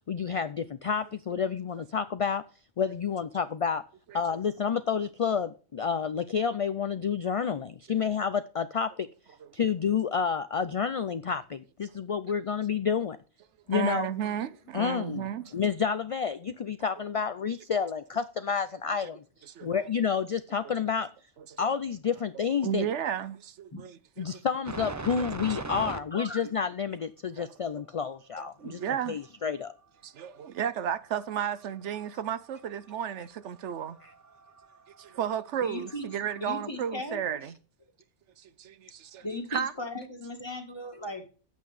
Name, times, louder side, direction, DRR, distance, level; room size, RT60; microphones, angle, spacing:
voice 1, 0.1-2.4 2.8-3.8 4.1-9.1 9.5-13.2 13.7-14.1 14.7-15.3 15.5-19.2 19.6-21.1 21.6-22.9 24.2-28.8 29.1-29.7 34.0-34.1, left 6 dB, 55° left, 0.3 m, -29 dB
voice 2, 13.7-15.5 19.5-19.9 21.5-21.7 22.6-24.0 24.3-24.4 25.8-26.2 27.4-27.5 28.4-29.2 30.0-34.0 35.0-37.6 38.4-39.2 39.5-39.7, right 9 dB, 85° right, 1.0 m, -33 dB
sound 1, 24.7-26.0 28.8-28.9 30.7-30.8 31.2-33.0 33.5-36.7, right 3 dB, 25° right, 0.4 m, -40 dB
voice 3, 26.1-26.5 35.6-36.1 36.4-37.4 39.2-41.3, left 1 dB, 25° left, 1.7 m, -37 dB
9.4 x 8.3 x 3.3 m
omnidirectional pair, 1.2 m